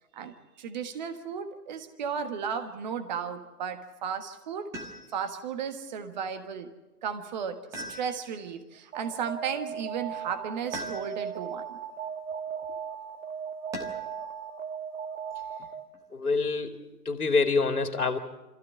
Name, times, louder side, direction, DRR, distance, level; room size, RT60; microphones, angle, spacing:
voice 1, 0.1-4.7 5.1-6.7 7.0-11.8, right 7 dB, 30° right, 9 dB, 1.5 m, -34 dB
sound 1, 4.7-5.4 7.7-8.5 10.7-11.4 13.7-14.2 15.9-16.6, equal, 5° right, 1.2 m, -41 dB
Alarm, 8.9-16.0, right 7 dB, 55° right, 1.5 m, -37 dB
voice 2, 16.1-16.8 17.1-18.2, left 4 dB, 70° left, 6 dB, 2.3 m, -26 dB
25.5 x 15.0 x 8.5 m, 1.1 s
figure-of-eight pair, 140°, 46 cm